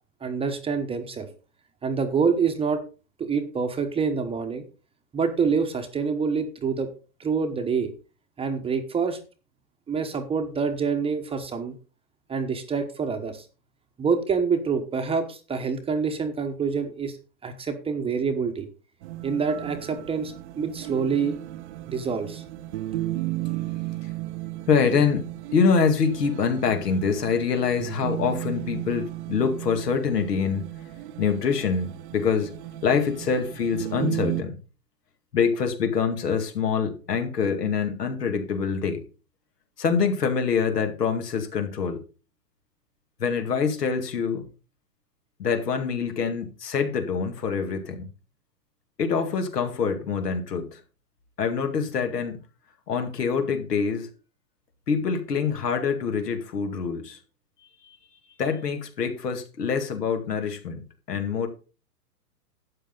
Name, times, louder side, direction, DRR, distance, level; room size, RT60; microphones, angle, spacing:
voice 1, 0.2-1.3 1.8-2.8 3.2-4.6 5.1-6.9 7.2-7.9 8.4-9.2 9.9-11.7 12.3-13.4 14.0-17.2 17.4-18.7 19.2-21.4 21.9-22.4, right 5 dB, 10° right, 1.0 m, -26 dB
sound 1, 19.0-34.4, right 16 dB, 45° right, 0.8 m, -35 dB
voice 2, 24.7-30.7 31.2-32.5 32.8-34.6 35.3-39.0 39.8-42.0 43.2-44.4 45.4-48.1 49.0-50.8 51.4-52.4 52.9-54.1 54.9-57.2 57.8-58.0 58.4-60.8 61.1-61.5, left 6 dB, 75° left, 2.3 m, -25 dB
12.0 x 8.3 x 3.9 m
hypercardioid pair, 120°, 48 cm